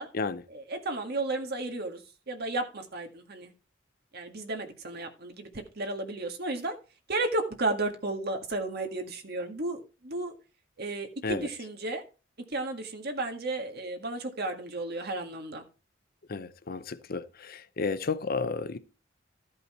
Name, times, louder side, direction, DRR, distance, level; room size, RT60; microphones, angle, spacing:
voice 1, 0.5-2.0 2.3-3.5 4.1-6.7 7.1-10.3 10.8-12.0 12.5-15.6, right 2 dB, 55° right, 1.7 m, -33 dB
voice 2, 16.3-18.8, left 4 dB, 50° left, 0.7 m, -32 dB
13.5 x 5.5 x 4.3 m
head